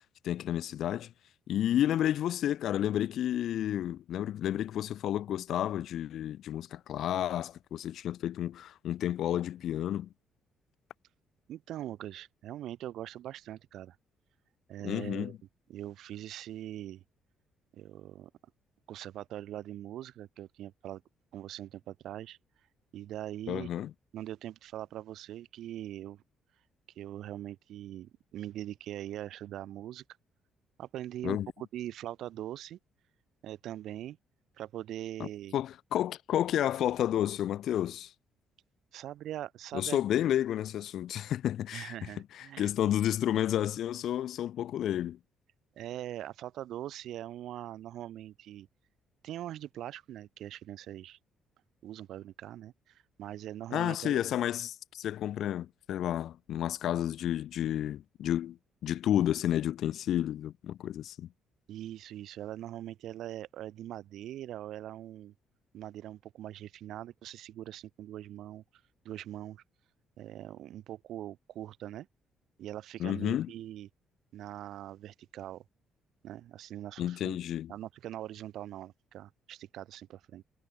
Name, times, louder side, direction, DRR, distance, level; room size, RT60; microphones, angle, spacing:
voice 1, 0.2-1.1 1.5-10.1 14.8-15.3 23.5-23.9 31.2-31.5 35.2-38.1 39.7-42.1 42.3-45.2 53.7-58.6 58.8-61.3 73.0-73.5 77.0-77.7, left 11 dB, 65° left, 2.2 m, -31 dB
voice 2, 11.5-14.0 14.7-15.3 15.7-17.0 17.7-18.3 18.9-21.0 21.3-22.4 22.9-23.7 24.1-26.2 27.0-30.0 30.8-32.8 33.4-34.2 34.6-35.6 38.9-40.0 41.7-42.7 45.8-48.7 49.2-51.2 51.8-54.2 61.7-65.3 65.7-68.6 69.0-69.6 70.2-72.1 72.6-73.9 74.3-75.6 76.2-77.4 77.7-80.4, right 12 dB, 70° right, 7.7 m, -42 dB
cardioid pair, 140°, 0 cm